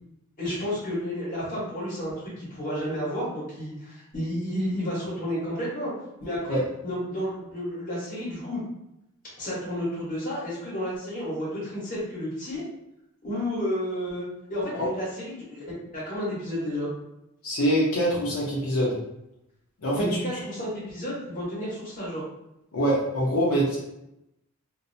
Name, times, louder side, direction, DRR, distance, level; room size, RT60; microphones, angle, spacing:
voice 1, 0.4-5.9 6.2-8.6 9.4-12.6 13.2-15.6 15.9-16.9 20.0-22.2, equal, 40° left, -8 dB, 1.2 m, -31 dB
voice 2, 17.4-19.0 19.8-20.0 22.7-23.8, equal, 75° left, -6 dB, 0.6 m, -24 dB
2.6 x 2.0 x 2.6 m, 0.84 s
head